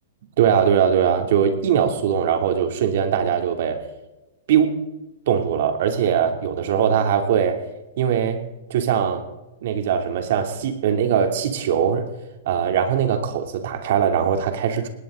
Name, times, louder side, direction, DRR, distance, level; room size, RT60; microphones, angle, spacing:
voice 1, 0.4-3.8 4.5-4.8 5.3-7.6 8.0-9.2 9.6-12.1 12.4-14.9, right 8 dB, 60° right, 5 dB, 2.9 m, -21 dB
19.5 x 18.0 x 3.9 m, 1.0 s
hypercardioid pair, 150°, 0 cm